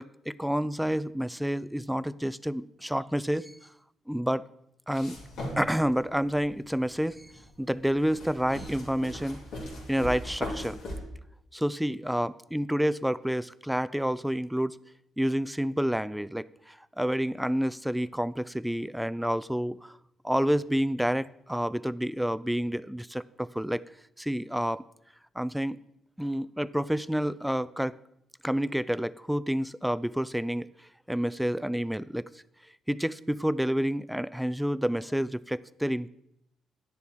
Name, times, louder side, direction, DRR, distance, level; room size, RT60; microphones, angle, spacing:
voice 1, 0.0-3.5 4.1-4.4 4.9-5.2 5.6-7.3 7.6-9.4 9.9-10.8 11.5-14.8 15.2-20.0 20.2-23.8 24.2-24.8 25.4-25.8 26.2-28.0 28.4-30.7 31.1-32.2 32.9-36.1, equal, ahead, 18 dB, 0.3 m, -29 dB
sound 1, 4.9-10.9, left 1 dB, 80° left, 3.2 m, -39 dB
10.0 x 6.9 x 4.7 m, 0.77 s
cardioid pair, 90°, 0 cm